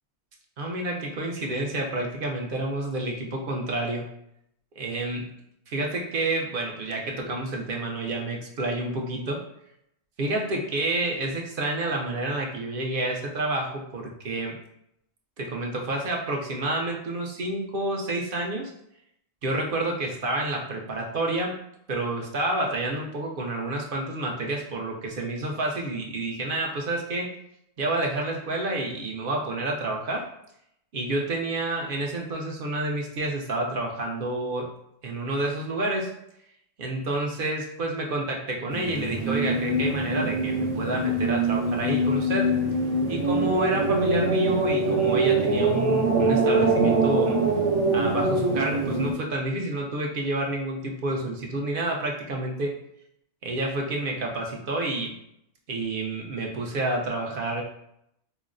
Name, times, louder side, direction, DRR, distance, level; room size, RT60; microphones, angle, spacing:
voice 1, 0.6-4.1 4.8-5.4 5.7-9.4 10.2-14.6 15.4-18.7 19.4-21.5 21.9-27.3 27.8-30.3 30.9-34.7 35.0-36.1 36.8-42.5 43.1-47.4 47.9-52.8 53.4-55.2 55.7-57.6, right 2 dB, 55° right, 0 dB, 0.7 m, -29 dB
sound 1, 38.7-49.1, right 2 dB, 80° right, 1.2 m, -23 dB
5.3 x 2.1 x 2.4 m, 0.76 s
omnidirectional pair, 1.2 m